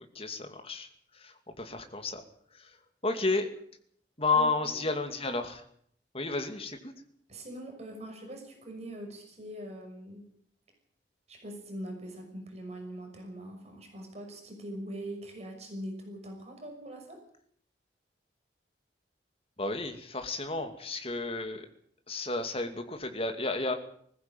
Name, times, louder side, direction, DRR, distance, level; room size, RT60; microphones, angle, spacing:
voice 1, 0.0-2.2 2.5-2.8 3.0-3.5 4.2-5.6 6.1-6.9 19.6-21.7 22.1-23.7, left 3 dB, 35° left, 6 dB, 2.5 m, -32 dB
voice 2, 4.3-4.9 7.3-10.3 11.3-17.2, right 1 dB, 40° right, 3 dB, 6.1 m, -42 dB
20.5 x 15.0 x 9.1 m, 0.65 s
head